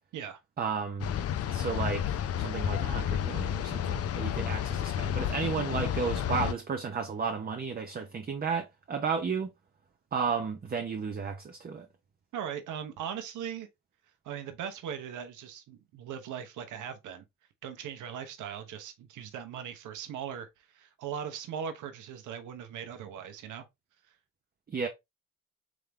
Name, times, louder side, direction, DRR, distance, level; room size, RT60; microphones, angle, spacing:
voice 1, 0.6-1.1 1.5-9.5 10.1-11.9 24.7-24.9, right 5 dB, 30° right, 0.6 m, -33 dB
sound 1, 1.0-6.5, left 10 dB, 55° left, 0.5 m, -31 dB
voice 2, 12.3-13.7 14.2-17.2 17.6-23.6, right 8 dB, 80° right, 1.0 m, -39 dB
3.7 x 3.4 x 3.1 m
cardioid pair, 90°, 30 cm